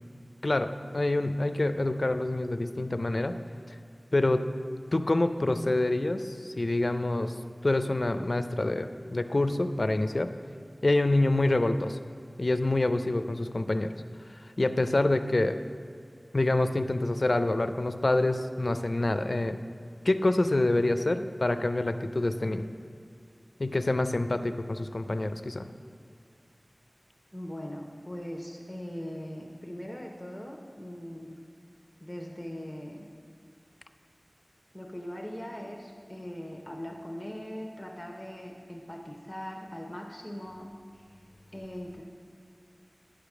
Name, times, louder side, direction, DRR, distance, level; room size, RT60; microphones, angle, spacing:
voice 1, 0.4-3.4 3.7-3.8 4.1-4.5 4.9-10.3 10.8-12.0 12.4-15.6 16.3-19.6 20.0-22.7 23.6-25.7, left 2 dB, 65° left, 9 dB, 0.4 m, -27 dB
voice 2, 27.3-31.4 32.0-33.1 34.7-40.7 41.5-42.0, equal, 25° left, 0 dB, 0.8 m, -40 dB
10.0 x 5.1 x 6.0 m, 2.3 s
wide cardioid pair, 50°, 0 cm